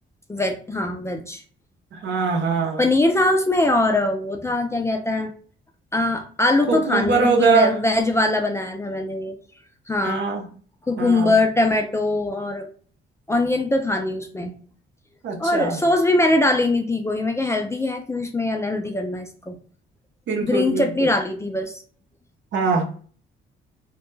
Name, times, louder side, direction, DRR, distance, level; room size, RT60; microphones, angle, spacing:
voice 1, 0.3-1.4 2.8-5.3 5.9-9.4 9.9-10.2 10.8-12.7 13.3-14.6 15.4-19.6 20.4-21.7, left 2 dB, 15° left, 4 dB, 0.3 m, -22 dB
voice 2, 1.9-2.8 6.7-7.7 10.0-10.4 11.0-11.4 15.2-15.8 20.3-21.1 22.5-22.8, right 4 dB, 70° right, 2 dB, 0.7 m, -22 dB
2.1 x 2.1 x 3.0 m, 0.43 s
cardioid pair, 90°, 20 cm